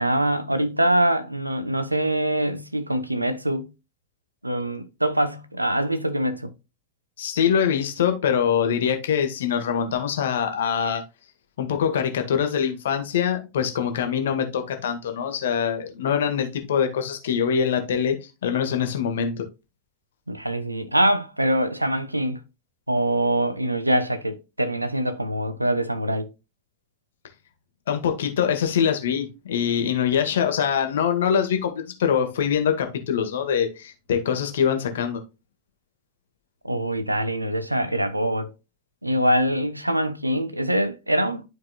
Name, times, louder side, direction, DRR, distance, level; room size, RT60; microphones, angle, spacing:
voice 1, 0.0-3.7 4.4-6.5 20.3-22.4 22.9-26.3 36.6-38.5 39.0-41.4, right 1 dB, 85° right, 0.8 m, -24 dB
voice 2, 7.2-11.0 11.6-18.2 18.4-19.4 27.9-35.2, left 8 dB, 60° left, 1.5 m, -24 dB
11.5 x 4.7 x 2.3 m
figure-of-eight pair, 90°, 0 cm